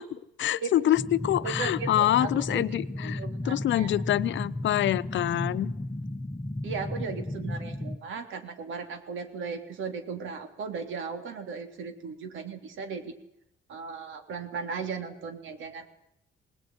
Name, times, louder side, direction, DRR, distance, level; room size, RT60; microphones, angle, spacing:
voice 1, 0.0-5.7, left 13 dB, 70° left, 15 dB, 0.8 m, -26 dB
sound 1, 1.0-8.0, left 1 dB, 15° left, 1.1 m, -34 dB
voice 2, 1.4-3.9 6.6-13.1 13.7-15.9, right 5 dB, 80° right, 7 dB, 3.4 m, -37 dB
21.5 x 19.5 x 9.5 m, 0.81 s
cardioid pair, 90°, 20 cm